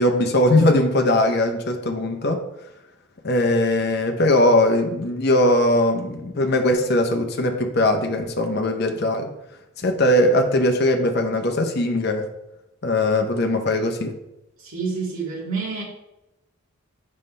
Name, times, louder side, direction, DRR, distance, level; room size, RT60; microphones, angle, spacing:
voice 1, 0.0-2.4 3.2-9.3 9.8-12.3 12.8-14.2, left 1 dB, 50° left, 5 dB, 0.7 m, -20 dB
voice 2, 14.6-15.8, right 4 dB, 80° right, -4 dB, 2.3 m, -28 dB
7.3 x 5.4 x 3.3 m, 0.92 s
head